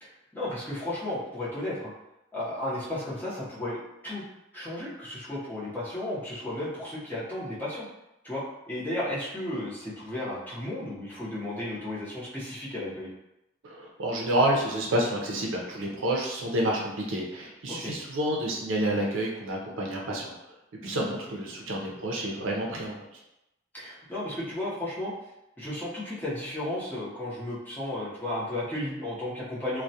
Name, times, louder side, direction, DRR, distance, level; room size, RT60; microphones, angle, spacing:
voice 1, 0.0-1.9 2.3-3.8 4.0-4.2 4.5-7.9 8.2-13.1 17.7-17.9 20.8-20.9 23.7-25.1 25.6-29.8, left 1 dB, 10° left, -9 dB, 0.7 m, -34 dB
voice 2, 13.6-20.3 20.8-23.0, right 1 dB, 80° right, -1 dB, 0.5 m, -29 dB
2.2 x 2.1 x 2.6 m, 0.90 s
head